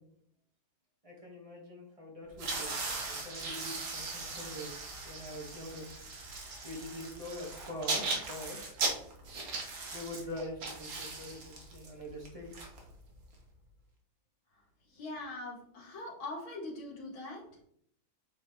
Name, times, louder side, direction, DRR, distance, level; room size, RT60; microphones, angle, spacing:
voice 1, 1.0-2.7 3.0-4.7 5.0-5.9 6.6-8.6 9.9-12.6, left 1 dB, 15° right, -3 dB, 1.8 m, -44 dB
sound 1, 2.3-13.3, right 3 dB, 50° right, 1.5 m, -38 dB
voice 2, 14.9-17.4, left 2 dB, 85° left, -3 dB, 2.9 m, -42 dB
8.5 x 4.3 x 3.4 m, 0.68 s
omnidirectional pair, 2.2 m